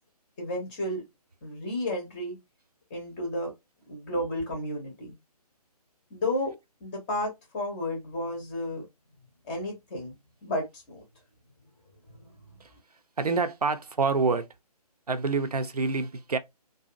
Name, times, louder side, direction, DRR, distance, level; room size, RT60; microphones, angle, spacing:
voice 1, 0.4-1.0 1.4-2.4 2.9-3.5 3.9-5.1 6.1-6.5 6.8-8.8 9.4-10.2 10.4-11.0 12.2-12.3, left 1 dB, 10° left, 0.6 m, -32 dB
voice 2, 13.2-14.5 15.1-16.4, right 4 dB, 70° right, 0.5 m, -27 dB
2.5 x 2.3 x 2.5 m
figure-of-eight pair, 145°, 20 cm